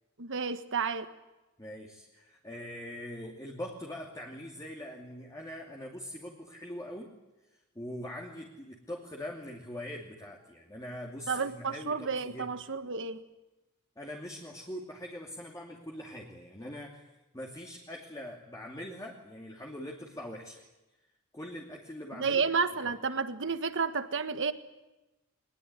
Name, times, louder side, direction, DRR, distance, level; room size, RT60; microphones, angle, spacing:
voice 1, 0.2-1.1 11.3-13.2 22.2-24.5, right 5 dB, 60° right, 1.6 m, -31 dB
voice 2, 1.6-7.1 7.7-12.5 14.0-17.0 17.3-20.6 21.3-22.5 22.8-22.9, left 1 dB, 15° left, 2.8 m, -42 dB
23.0 x 20.5 x 9.9 m
head